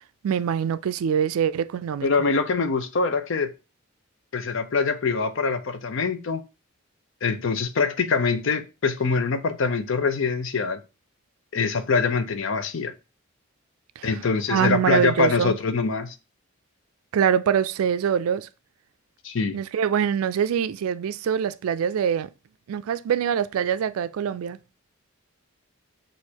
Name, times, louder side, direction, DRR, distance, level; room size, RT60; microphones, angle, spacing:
voice 1, 0.2-2.1 14.0-14.1 14.5-15.6 17.1-18.5 19.5-22.3 22.7-24.6, right 8 dB, 85° right, 0.3 m, -24 dB
voice 2, 2.0-3.5 4.3-6.4 7.2-10.8 11.5-12.9 14.0-16.2 19.2-19.6, left 4 dB, 60° left, 0.5 m, -24 dB
6.3 x 2.5 x 2.8 m
head